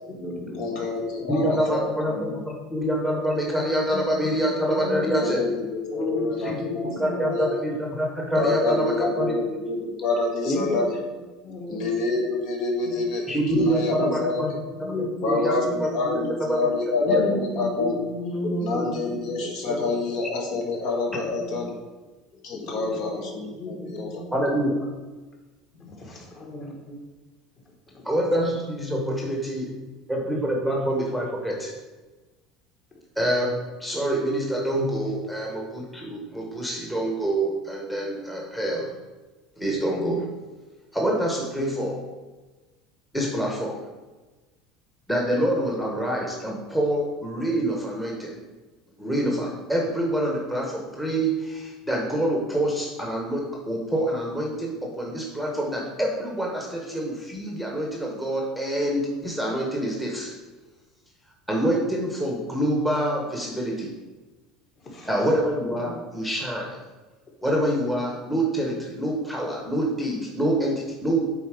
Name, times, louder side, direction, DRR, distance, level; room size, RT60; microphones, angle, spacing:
voice 1, 0.1-1.3 3.9-4.4 4.7-5.1 5.9-7.1 10.4-11.0 11.4-12.1 12.8-12.9 13.4-13.7 14.0-16.3 17.0-19.9 21.1-21.7 22.3-24.2 26.0-27.0 27.9-28.0 64.8-65.1 65.7-65.9, left 1 dB, 30° left, 0 dB, 1.7 m, -33 dB
voice 2, 0.6-2.4 5.0-7.6 8.3-10.9 11.7-13.2 13.5-14.5 15.2-18.0 18.6-21.7 22.4-24.2 25.9-26.0, left 3 dB, 55° left, 0 dB, 1.4 m, -27 dB
voice 3, 1.3-5.4 6.4-9.4 13.3-14.5 14.8-15.5 15.8-16.6 17.1-17.2 24.3-24.9 28.0-29.7 30.1-31.7 33.2-38.9 39.6-40.3 40.9-42.0 43.1-43.8 45.1-48.4 49.0-60.3 61.5-63.9 65.0-66.8 67.4-71.3, right 1 dB, 5° left, -2 dB, 1.1 m, -26 dB
8.0 x 4.2 x 4.9 m, 1.2 s
cardioid pair, 155°, 0 cm